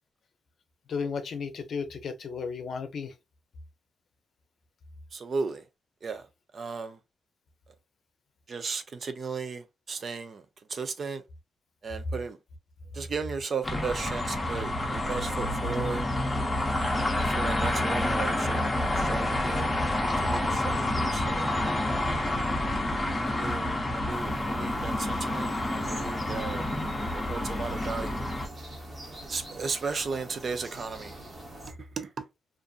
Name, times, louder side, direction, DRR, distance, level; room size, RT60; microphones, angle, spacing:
voice 1, 0.9-3.1, left 5 dB, 60° left, 0.6 m, -34 dB
voice 2, 5.1-5.6 6.0-6.2 6.5-7.0 8.5-10.4 10.7-11.2 11.8-12.4 12.9-16.0 17.2-19.7 20.2-21.5 22.2-22.5 23.2-26.7 27.1-28.3 29.3-31.1 31.8-32.3, right 5 dB, 45° right, 0.4 m, -35 dB
sound 1, 13.6-28.5, left 1 dB, 15° left, 0.7 m, -28 dB
sound 2, 24.1-31.7, right 1 dB, 25° right, 0.9 m, -44 dB
2.5 x 2.5 x 2.3 m
wide cardioid pair, 145°, 0 cm